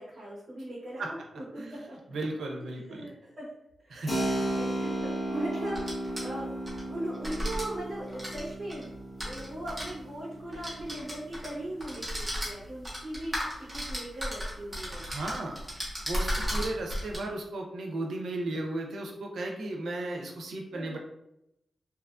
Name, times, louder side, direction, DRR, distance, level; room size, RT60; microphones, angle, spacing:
voice 1, 0.0-2.0 2.9-3.5 3.8-5.8 6.2-6.6 6.9-8.9 9.2-15.1 20.7-21.0, right 1 dB, 50° right, -7 dB, 0.7 m, -39 dB
voice 2, 2.1-3.1 3.9-4.3 15.1-15.6 16.0-21.0, right 2 dB, 90° right, 1 dB, 0.5 m, -35 dB
Keyboard (musical), 4.1-12.4, right 1 dB, 45° left, 0.9 m, -35 dB
sound 1, 5.6-6.8 7.1-7.6 8.1-9.9 10.5-11.5 11.8-17.2, equal, 10° right, 0.8 m, -34 dB
2.8 x 2.4 x 2.3 m, 0.82 s
wide cardioid pair, 150°, 0 cm